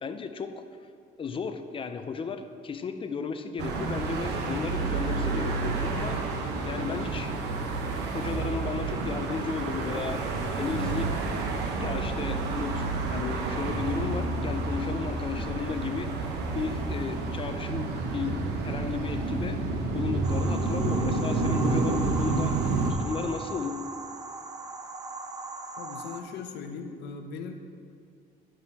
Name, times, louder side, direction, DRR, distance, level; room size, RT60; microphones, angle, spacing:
voice 1, 0.0-0.6 1.2-7.4 8.1-11.2 11.8-19.6 19.9-23.8, left 5 dB, 30° left, 9 dB, 0.5 m, -34 dB
sound 1, 3.6-22.9, right 3 dB, 85° right, 1.0 m, -29 dB
sound 2, 20.2-26.2, right 3 dB, 20° right, 0.6 m, -38 dB
voice 2, 25.8-27.5, left 5 dB, 80° left, 6 dB, 0.8 m, -39 dB
9.8 x 6.2 x 4.2 m, 2.2 s
cardioid pair, 110°, 17 cm